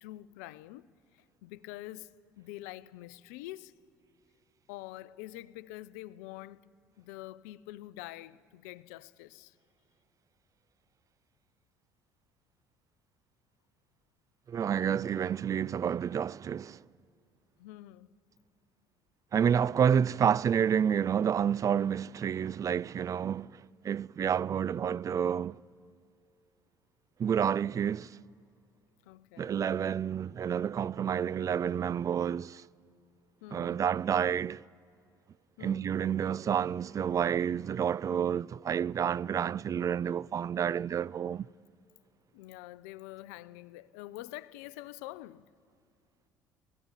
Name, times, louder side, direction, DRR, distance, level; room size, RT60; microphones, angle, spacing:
voice 1, 0.0-0.8 1.1-3.7 4.7-6.6 7.0-9.5 17.6-18.1 29.1-29.6 33.4-33.9 35.6-36.0 42.3-45.5, left 16 dB, 80° left, 0.6 m, -46 dB
voice 2, 14.5-16.8 19.3-25.6 27.2-28.1 29.4-32.6 33.5-34.6 35.6-41.5, right 8 dB, 40° right, 0.4 m, -29 dB
17.0 x 16.5 x 9.8 m
hypercardioid pair, 65°, 9 cm